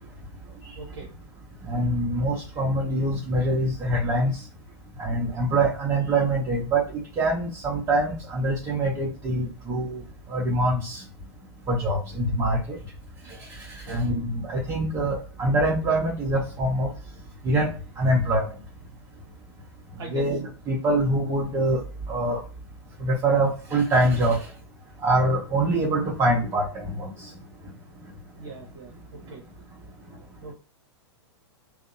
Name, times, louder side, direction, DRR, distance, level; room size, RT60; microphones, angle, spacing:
voice 1, 0.8-1.1 13.8-14.2 20.0-20.2 28.4-28.9 29.3-29.4 30.4-30.5, right 3 dB, 60° right, -2 dB, 0.8 m, -39 dB
voice 2, 1.7-4.4 5.0-6.8 7.2-10.0 10.3-11.0 11.7-12.8 13.9-16.9 17.4-17.7 18.0-18.5 20.1-21.8 22.1-22.4 23.0-24.4 25.0-27.1, right 1 dB, 25° right, -4 dB, 0.7 m, -24 dB
2.7 x 2.0 x 2.5 m, 0.36 s
figure-of-eight pair, 100°, 14 cm